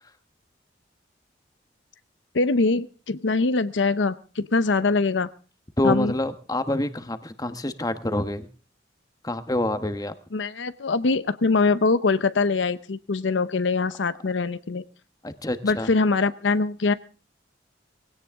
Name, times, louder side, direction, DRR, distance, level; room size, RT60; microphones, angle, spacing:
voice 1, 2.3-5.3 5.8-6.1 10.3-14.8 15.6-16.9, left 3 dB, 75° left, 14 dB, 0.7 m, -23 dB
voice 2, 5.8-8.5 9.2-10.1 15.2-15.9, left 1 dB, 20° left, 9 dB, 1.1 m, -27 dB
19.5 x 17.0 x 3.6 m, 0.37 s
head